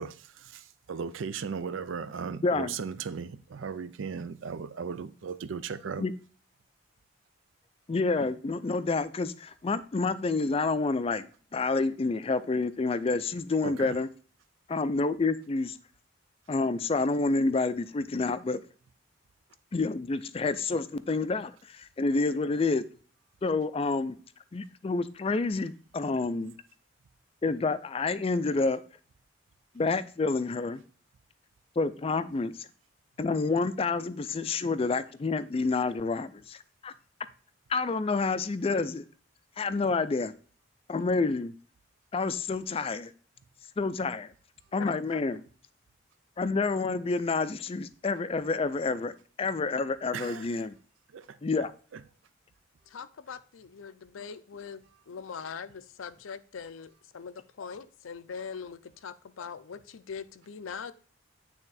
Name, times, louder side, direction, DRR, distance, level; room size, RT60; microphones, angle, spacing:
voice 1, 0.0-6.0 13.6-14.0 50.1-50.5 51.1-51.4 51.9-52.0, right 6 dB, 75° right, 0.5 m, -37 dB
voice 2, 2.4-2.7 6.0-6.1 7.9-11.3 11.5-14.1 14.7-15.8 16.5-18.6 19.7-22.9 23.4-24.2 24.5-26.5 27.4-28.8 29.7-30.8 31.8-32.7 33.2-36.9 37.7-39.1 39.6-40.3 40.9-41.5 42.1-43.1 43.8-44.3 44.7-45.4 46.4-49.1 49.4-50.8 51.4-51.7, left 3 dB, 30° left, 0.4 m, -28 dB
voice 3, 44.7-45.2 52.9-60.9, left 6 dB, 90° left, 0.5 m, -42 dB
8.8 x 3.5 x 4.1 m
head